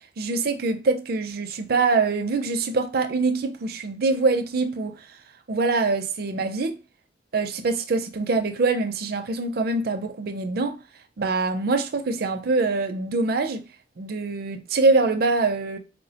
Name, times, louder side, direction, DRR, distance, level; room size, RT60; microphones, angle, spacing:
voice 1, 0.2-4.9 5.5-6.8 7.3-10.8 11.2-13.6 14.0-15.8, right 3 dB, 55° right, 0.4 m, -24 dB
4.2 x 2.0 x 2.8 m
head